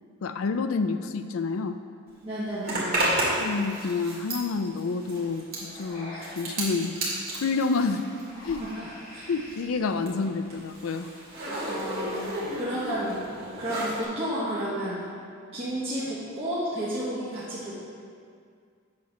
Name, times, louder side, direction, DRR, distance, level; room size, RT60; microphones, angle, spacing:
voice 1, 0.2-1.8 3.2-6.9 7.3-8.0 8.4-8.6 9.3-11.1, left 4 dB, 80° left, 9 dB, 0.4 m, -28 dB
voice 2, 2.2-3.2 8.6-9.2 11.7-13.2 13.6-15.1 15.5-17.7, right 1 dB, 30° right, -10 dB, 1.2 m, -32 dB
Zipper (clothing), 2.6-8.8 9.1-14.1, right 1 dB, 50° right, 2.1 m, -32 dB
sound 1, 5.6-12.2, left 1 dB, 45° left, 1.9 m, -48 dB
7.6 x 4.3 x 5.8 m, 2.2 s
head